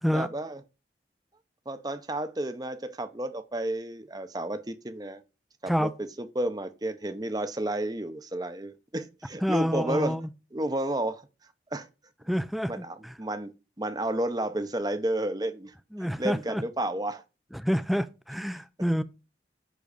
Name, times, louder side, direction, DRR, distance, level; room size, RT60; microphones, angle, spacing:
voice 1, 0.1-0.6 1.7-5.2 5.6-5.9 6.2-10.2 10.5-11.2 11.7-11.9 12.7-13.5 13.8-15.7 16.0-17.2, right 1 dB, 20° right, 0.8 m, -31 dB
voice 2, 9.4-10.3 12.3-13.1 15.9-16.6 17.5-19.0, equal, ahead, 0.4 m, -28 dB
10.0 x 3.8 x 6.8 m
head